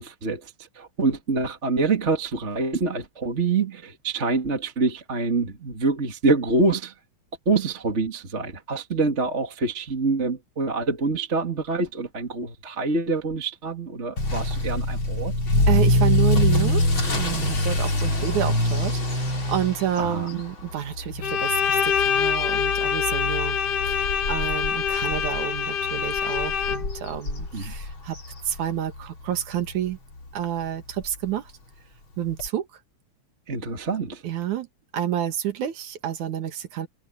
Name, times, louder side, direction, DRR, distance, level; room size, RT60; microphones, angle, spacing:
voice 1, 0.0-6.9 7.5-15.3 20.0-20.4 27.5-27.7 33.5-34.2, right 3 dB, 25° right, 2.1 m, -26 dB
Motor vehicle (road) / Accelerating revving vroom, 14.2-29.0 29.3-29.7 30.2-30.3 30.6-30.7 31.0-31.1 32.4-32.5, left 1 dB, 40° left, 5.5 m, -25 dB
voice 2, 15.7-23.6 23.9-28.2 28.5-30.0 30.3-31.5 32.2-32.7 34.2-34.7 34.9-36.9, right 10 dB, 85° right, 3.0 m, -29 dB
Bowed string instrument, 21.2-27.0, left 8 dB, 60° left, 2.1 m, -25 dB
omnidirectional pair, 3.3 m